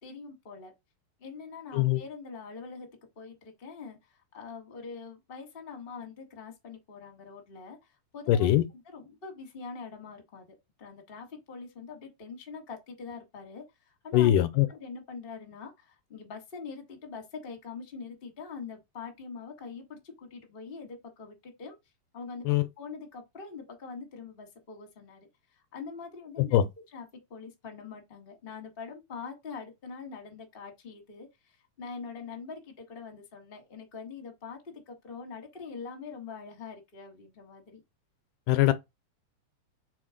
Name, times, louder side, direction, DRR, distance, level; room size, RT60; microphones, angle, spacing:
voice 1, 0.0-0.7 1.2-2.9 3.1-13.6 14.0-14.4 14.7-21.8 22.1-25.3 25.5-26.6 26.9-37.8, left 5 dB, 25° left, 1.3 m, -44 dB
voice 2, 8.3-8.6 14.1-14.7 22.5-22.6 26.5-26.6 38.5-38.7, left 13 dB, 80° left, 2.2 m, -22 dB
4.5 x 4.2 x 5.0 m
omnidirectional pair, 3.7 m